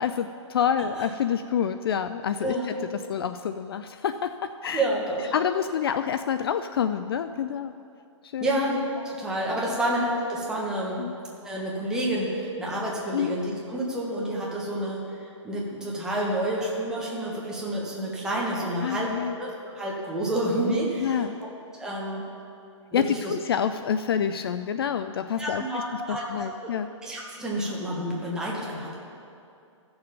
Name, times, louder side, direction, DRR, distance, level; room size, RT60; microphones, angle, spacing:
voice 1, 0.0-2.8 3.1-4.8 5.3-7.7 8.2-8.5 11.0-11.2 13.1-13.4 18.8-19.4 21.0-21.4 22.9-25.8 26.1-26.9, left 8 dB, 50° left, 10 dB, 0.4 m, -27 dB
voice 2, 4.7-5.3 8.4-11.1 11.4-21.3 21.8-22.2 22.9-23.3 25.4-26.2 26.6-26.7 27.0-29.0, right 1 dB, 5° right, -5 dB, 1.5 m, -29 dB
15.0 x 6.9 x 5.3 m, 2.5 s
hypercardioid pair, 155°, 16 cm